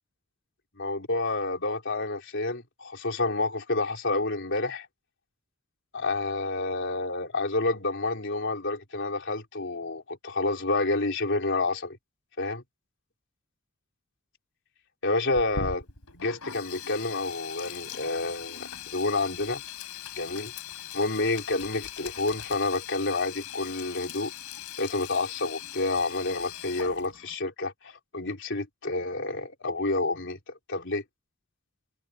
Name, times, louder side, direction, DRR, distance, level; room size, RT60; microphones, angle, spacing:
voice 1, 0.8-4.9 5.9-12.0 12.4-12.6 15.0-15.8 16.1-19.6 20.2-20.5 20.9-24.3 24.8-30.4 30.7-31.0, left 2 dB, 55° left, 3.9 m, -29 dB
Sink (filling or washing), 15.3-27.3, left 8 dB, 90° left, 4.6 m, -40 dB
head